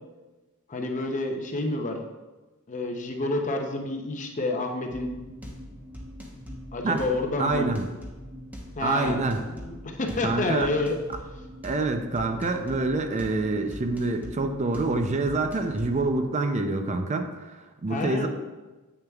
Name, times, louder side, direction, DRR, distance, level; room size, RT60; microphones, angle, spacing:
voice 1, 0.7-2.0 2.7-5.1 6.7-7.7 8.8-11.0 17.9-18.3, left 2 dB, 35° left, 3 dB, 0.7 m, -29 dB
sound 1, 4.9-16.3, equal, 10° right, 1.0 m, -42 dB
voice 2, 7.4-7.9 8.8-9.4 10.2-10.7 11.6-18.3, right 3 dB, 35° right, 6 dB, 0.4 m, -26 dB
8.5 x 6.5 x 2.3 m, 1.2 s
head